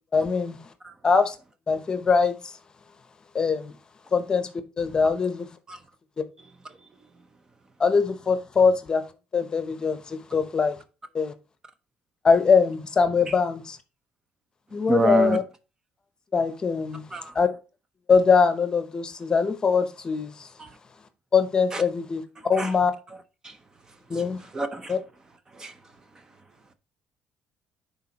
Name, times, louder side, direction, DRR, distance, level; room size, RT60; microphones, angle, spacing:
voice 1, 0.1-0.6 1.0-1.3 1.7-2.5 3.3-3.7 4.1-4.5 4.8-5.5 7.8-9.0 9.3-10.8 11.1-11.3 12.2-13.8 14.7-15.4 16.3-17.0 17.3-17.5 18.1-20.5 21.3-22.9 24.1-24.4 24.9-25.0, left 5 dB, 30° left, 0.8 m, -22 dB
voice 2, 14.9-15.4 17.1-17.3 20.6-20.7 21.7-21.8 22.6-22.7 24.5-24.9 25.6-25.7, right 2 dB, 20° right, 0.6 m, -26 dB
10.5 x 4.1 x 2.9 m
cardioid pair, 120°, 3 cm